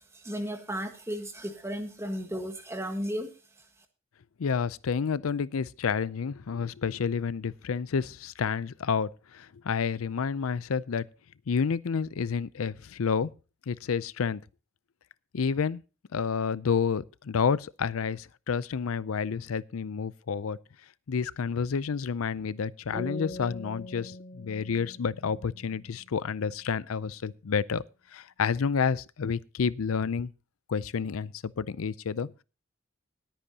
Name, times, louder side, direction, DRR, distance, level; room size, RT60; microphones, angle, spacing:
voice 1, 0.0-3.3, equal, 15° right, 1.5 m, -34 dB
voice 2, 4.4-11.0 11.5-13.3 13.7-14.4 15.3-15.8 16.1-20.6 21.1-27.8 28.1-30.3 30.7-32.3, left 6 dB, 85° left, 0.5 m, -29 dB
sound 1, 22.9-26.4, left 1 dB, 35° left, 3.5 m, -42 dB
20.0 x 9.0 x 2.8 m
head